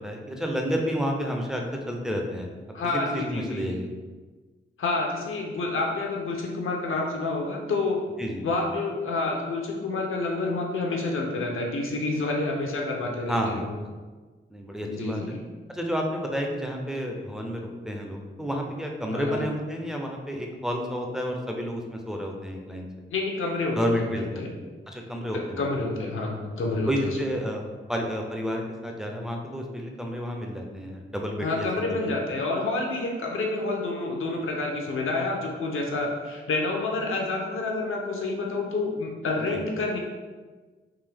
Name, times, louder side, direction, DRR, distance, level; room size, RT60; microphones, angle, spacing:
voice 1, 0.0-2.5 2.9-3.9 8.2-8.5 13.3-13.7 14.5-15.2 15.7-22.9 23.8-24.4 24.9-25.7 26.9-27.6 27.9-32.0 39.5-39.6, equal, 5° right, 1 dB, 0.4 m, -30 dB
voice 2, 2.7-3.7 4.8-8.0 8.4-13.7 14.8-15.4 19.1-19.5 23.1-24.5 25.6-27.2 31.4-40.0, left 3 dB, 75° left, 0 dB, 0.7 m, -28 dB
3.7 x 2.7 x 3.3 m, 1.4 s
wide cardioid pair, 165°, 21 cm